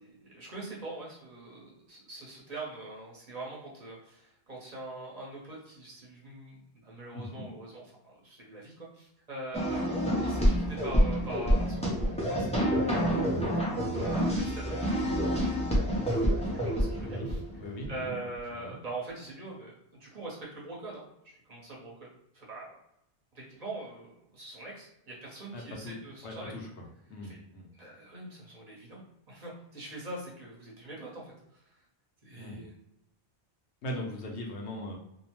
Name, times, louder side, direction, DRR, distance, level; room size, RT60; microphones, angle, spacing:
voice 1, 0.0-13.1 13.6-17.4 17.9-22.7 23.3-26.5 27.2-27.4 27.7-31.8 32.2-32.7, right 2 dB, 40° right, -4 dB, 1.0 m, -43 dB
voice 2, 7.1-7.5 17.0-17.3 17.6-18.2 18.6-18.8 25.5-25.9 26.2-26.7 27.1-27.7 32.4-32.7 33.8-35.0, left 1 dB, 85° left, 0 dB, 1.0 m, -39 dB
sound 1, 9.5-17.8, equal, 10° left, 0.3 m, -28 dB
2.7 x 2.1 x 2.9 m, 0.80 s
omnidirectional pair, 1.1 m